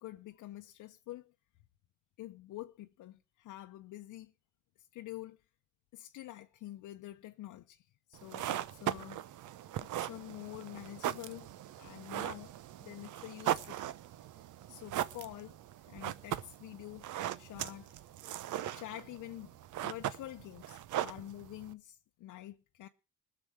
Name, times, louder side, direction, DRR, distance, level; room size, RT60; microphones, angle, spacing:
voice 1, 0.0-1.3 2.2-4.3 4.9-5.4 5.9-9.2 9.8-12.5 12.8-13.8 14.7-15.6 15.9-17.1 17.4-18.0 18.7-19.5 19.8-22.9, left 15 dB, 80° left, 0.7 m, -47 dB
sound 1, 8.1-21.7, right 12 dB, 80° right, 0.8 m, -39 dB
19.5 x 6.9 x 6.1 m
cardioid pair, 90°, 30 cm